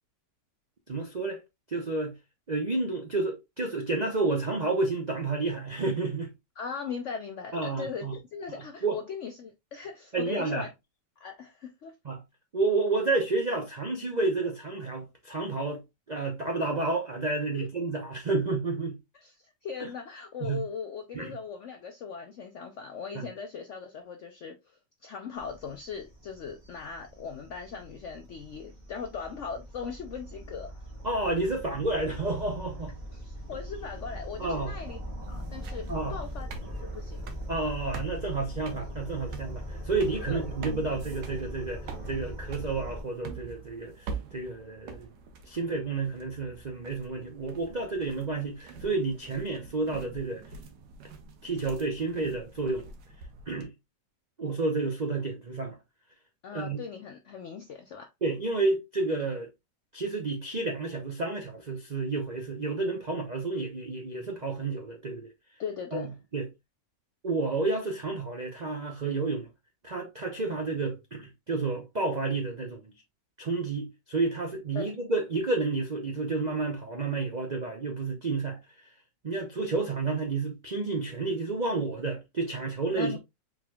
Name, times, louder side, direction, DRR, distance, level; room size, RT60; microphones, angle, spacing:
voice 1, 0.9-1.4 1.7-2.1 2.5-6.3 7.5-8.1 8.5-9.0 10.1-10.7 12.0-12.2 12.5-15.8 16.1-19.0 19.8-19.9 20.4-20.6 21.1-21.3 23.1-23.2 31.0-32.9 34.4-34.7 35.9-36.2 37.5-45.1 45.4-50.4 51.4-52.9 53.5-53.7 54.4-55.8 56.5-56.8 58.2-59.5 59.9-65.3 65.9-66.5 67.2-69.5 69.8-72.9 73.4-78.6 79.2-83.2, right 3 dB, 60° right, 0.4 m, -30 dB
voice 2, 6.6-10.7 11.2-11.9 17.5-17.7 19.2-19.3 19.6-24.6 25.0-30.8 33.1-35.0 35.3-36.5 36.8-37.3 40.3-40.4 56.4-58.1 65.6-66.1 74.7-74.8 83.0-83.2, left 6 dB, 75° left, 0.6 m, -39 dB
sound 1, 25.4-43.0, equal, 25° right, 1.5 m, -40 dB
sound 2, 35.2-53.6, right 4 dB, 80° right, 1.5 m, -45 dB
4.8 x 3.9 x 2.3 m
omnidirectional pair, 1.9 m